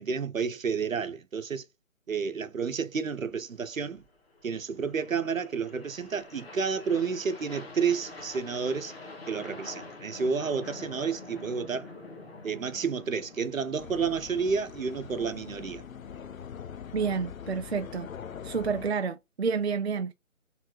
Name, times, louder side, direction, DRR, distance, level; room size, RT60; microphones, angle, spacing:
voice 1, 0.0-1.6 2.1-4.0 4.4-8.9 9.3-11.9 12.4-15.8, right 5 dB, 75° right, 1.2 m, -30 dB
sound 1, 3.0-16.4, left 2 dB, 50° left, 1.9 m, -47 dB
sound 2, 13.8-18.9, left 8 dB, 80° left, 0.7 m, -43 dB
voice 2, 16.9-18.1 18.4-20.1, right 5 dB, 55° right, 0.5 m, -29 dB
6.4 x 3.8 x 4.6 m
hypercardioid pair, 180°, 40 cm